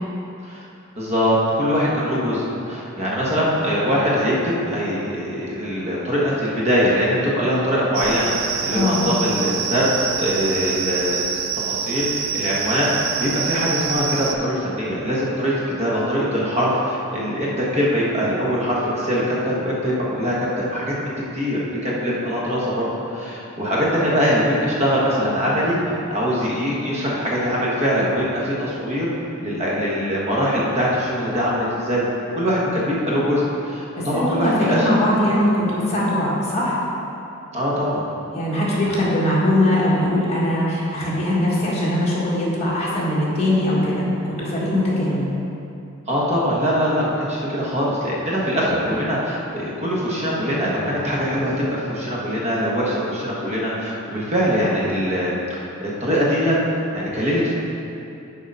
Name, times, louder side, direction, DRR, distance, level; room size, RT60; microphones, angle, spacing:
voice 1, 1.0-11.3 11.6-25.8 26.1-29.1 29.4-32.0 32.3-34.9 35.2-35.4 37.5-38.0 46.1-56.6 56.9-57.5, equal, 30° right, -6 dB, 1.2 m, -22 dB
sound 1, 7.9-14.3, right 7 dB, 45° right, 0.4 m, -26 dB
voice 2, 8.7-9.0 33.9-36.7 38.3-45.2, left 1 dB, 30° left, -7 dB, 1.5 m, -21 dB
6.5 x 5.0 x 5.4 m, 2.8 s
head